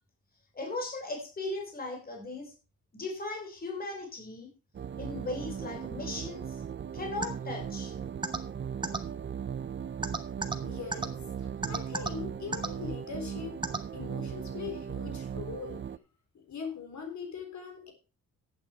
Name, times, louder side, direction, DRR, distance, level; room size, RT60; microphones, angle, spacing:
voice 1, 0.6-2.5 2.9-4.5 5.0-6.4 6.9-7.9, left 2 dB, 25° left, 2 dB, 3.5 m, -37 dB
sound 1, 4.7-16.0, right 7 dB, 35° right, 0.5 m, -38 dB
sound 2, 7.2-7.3 8.2-8.4 8.8-9.0 10.0-10.6 10.9-11.1 11.6-12.1 12.5-12.7 13.6-13.8, right 3 dB, 15° right, 1.2 m, -30 dB
voice 2, 10.6-13.6 13.9-15.8 16.3-17.9, left 6 dB, 55° left, 3 dB, 3.9 m, -41 dB
11.5 x 9.1 x 4.5 m, 0.33 s
wide cardioid pair, 145°, 33 cm